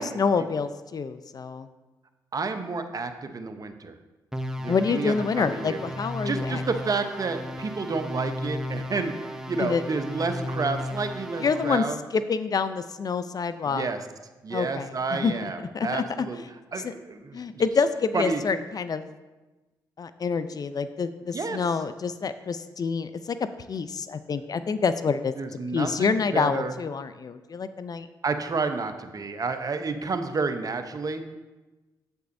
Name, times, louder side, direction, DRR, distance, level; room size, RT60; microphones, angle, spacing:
voice 1, 0.0-1.7 4.7-6.6 9.6-9.8 11.4-11.8 12.1-13.9 14.5-16.3 16.8-16.9 17.3-19.1 20.0-23.4 23.7-25.3 25.7-28.1, left 5 dB, 45° left, 12 dB, 0.4 m, -27 dB
voice 2, 2.3-3.9 4.6-5.8 6.2-12.0 13.6-14.0 14.4-16.4 16.7-17.6 18.1-18.4 21.3-21.6 25.4-26.7 28.2-31.2, right 4 dB, 45° right, 8 dB, 0.8 m, -30 dB
sound 1, 4.3-11.9, left 1 dB, 5° right, 0.8 m, -34 dB
8.1 x 7.8 x 2.6 m, 1.1 s
supercardioid pair, 50°, 9 cm